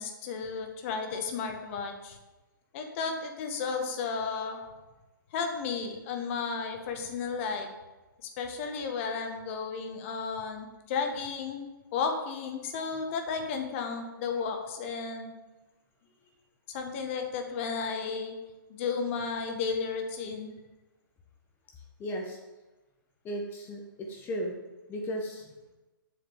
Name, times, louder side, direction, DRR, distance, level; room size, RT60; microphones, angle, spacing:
voice 1, 0.0-2.2 2.7-4.7 5.3-7.7 8.4-11.7 11.9-15.3 16.7-18.3 18.7-20.5, left 5 dB, 35° left, 4 dB, 1.5 m, -33 dB
voice 2, 22.0-22.4 23.2-24.5 24.9-25.5, equal, 15° left, 1 dB, 1.1 m, -35 dB
7.9 x 4.9 x 6.9 m, 1.1 s
figure-of-eight pair, 130°, 11 cm